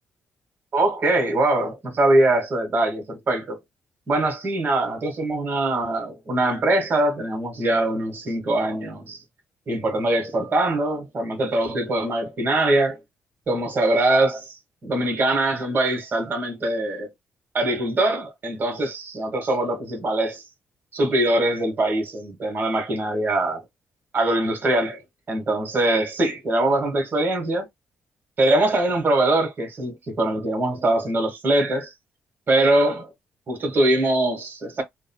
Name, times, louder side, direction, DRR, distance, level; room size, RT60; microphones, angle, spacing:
voice 1, 0.7-3.6 4.1-9.2 9.7-13.0 13.5-17.1 17.5-20.4 20.9-23.6 24.1-25.0 25.3-27.7 28.4-31.9 32.5-33.1 33.5-34.8, right 1 dB, 45° right, 1.3 m, -22 dB
3.5 x 2.2 x 2.2 m
cardioid pair, 75°, 5 cm